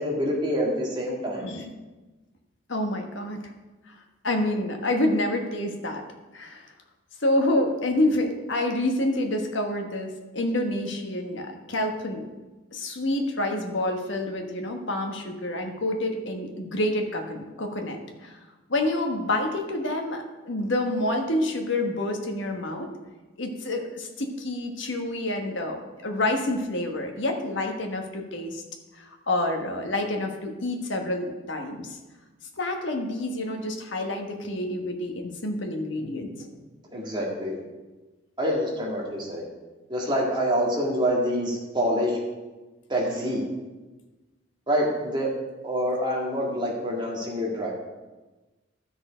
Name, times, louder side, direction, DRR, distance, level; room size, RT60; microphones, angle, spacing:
voice 1, 0.0-1.5 36.9-37.6 38.4-39.5 39.9-42.2 42.9-43.4 44.7-45.3 45.6-47.7, equal, 25° right, -2 dB, 2.0 m, -26 dB
voice 2, 1.3-1.7 2.7-3.4 3.9-6.0 6.3-6.7 7.2-12.3 12.7-18.4 18.7-22.9 23.4-28.6 28.9-32.0 32.6-36.6, left 1 dB, 65° left, 3 dB, 1.4 m, -28 dB
12.5 x 6.5 x 5.1 m, 1.2 s
head